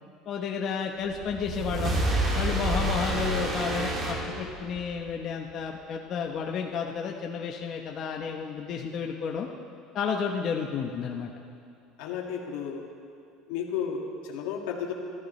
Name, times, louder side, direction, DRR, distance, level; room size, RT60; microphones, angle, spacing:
voice 1, 0.3-2.0 2.3-9.5 9.9-11.3, left 6 dB, 40° left, 1 dB, 0.9 m, -31 dB
sound 1, 1.1-4.9, right 1 dB, 30° right, 2.5 m, -28 dB
voice 2, 12.0-12.9 13.5-14.9, left 7 dB, 80° left, 1 dB, 2.0 m, -33 dB
24.5 x 13.5 x 3.2 m, 2.5 s
cardioid pair, 150°, 0 cm